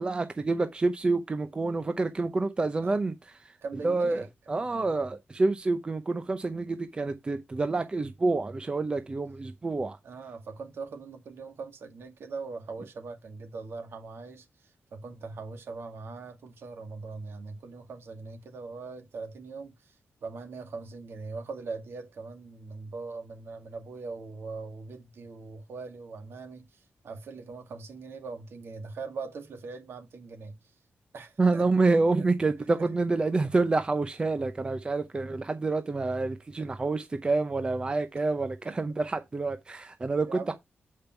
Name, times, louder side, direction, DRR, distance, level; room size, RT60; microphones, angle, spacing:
voice 1, 0.0-3.1 3.8-10.0 31.4-40.5, right 3 dB, 25° right, 0.7 m, -28 dB
voice 2, 3.6-4.3 4.6-5.0 10.0-19.9 20.2-30.6 31.1-31.7 32.2-32.3 32.8-32.9 36.6-36.7 38.7-38.8 40.2-40.5, right 4 dB, 70° right, 2.3 m, -41 dB
8.5 x 5.4 x 4.4 m
wide cardioid pair, 165°, 4 cm